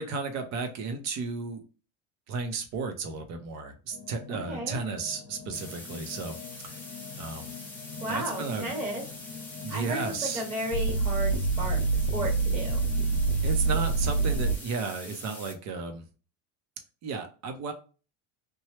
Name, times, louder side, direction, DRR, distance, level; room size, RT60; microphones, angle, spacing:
voice 1, 0.0-1.6 2.3-6.4 6.6-6.8 7.2-7.5 7.9-8.7 9.6-10.4 13.4-16.0 17.0-17.7, right 4 dB, 45° right, 0.7 m, -34 dB
sound 1, 3.9-14.6, right 3 dB, 65° left, 0.9 m, -30 dB
voice 2, 4.3-4.8 8.0-9.0 9.7-11.8 12.1-12.8, right 1 dB, 20° right, 1.3 m, -34 dB
sound 2, 5.5-15.5, left 2 dB, 5° left, 0.6 m, -45 dB
2.9 x 2.2 x 3.1 m
cardioid pair, 155°, 37 cm